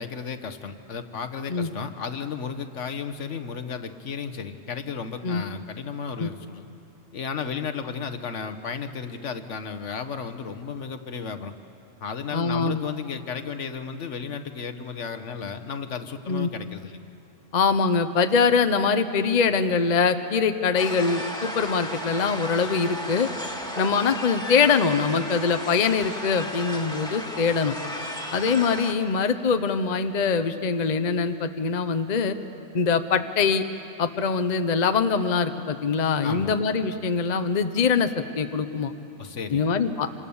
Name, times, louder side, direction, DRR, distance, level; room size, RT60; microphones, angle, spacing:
voice 1, 0.0-6.7 7.1-11.5 12.0-17.1 36.2-36.6 39.2-39.7, left 6 dB, 65° left, 9 dB, 1.4 m, -34 dB
voice 2, 12.3-12.8 16.3-16.5 17.5-23.3 23.8-27.8 28.3-32.4 32.7-33.6 34.0-38.9 39.5-40.1, left 5 dB, 40° left, 9 dB, 0.8 m, -23 dB
sound 1, 20.8-28.9, equal, 5° left, 2.0 m, -34 dB
27.0 x 26.5 x 7.1 m, 2.8 s
omnidirectional pair, 1.3 m